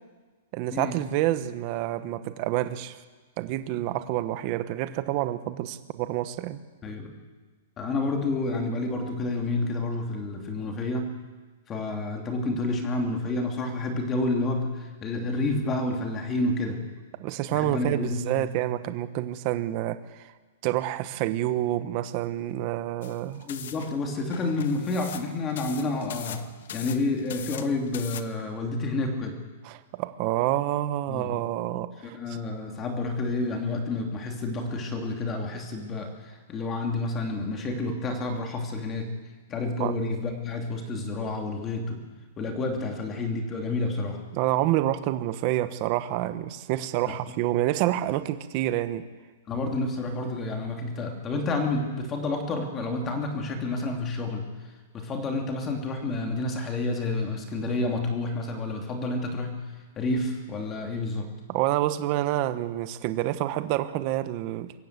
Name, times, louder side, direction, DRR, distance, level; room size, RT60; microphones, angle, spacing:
voice 1, 0.5-3.0 3.4-6.6 17.2-20.3 20.6-23.5 29.6-32.4 39.8-39.9 44.3-49.1 61.5-64.7, right 14 dB, 30° right, 12 dB, 1.0 m, -28 dB
voice 2, 7.8-11.1 11.7-16.8 17.5-18.5 23.4-26.5 26.7-29.4 31.1-31.3 32.0-39.1 39.5-42.0 42.4-44.2 47.0-47.2 49.5-54.5 54.9-59.6 60.0-61.3, left 2 dB, 15° left, 3 dB, 2.6 m, -29 dB
sound 1, 23.0-28.2, left 9 dB, 60° left, 1.3 m, -41 dB
25.0 x 15.0 x 8.2 m, 1.3 s
hypercardioid pair, 175°, 0 cm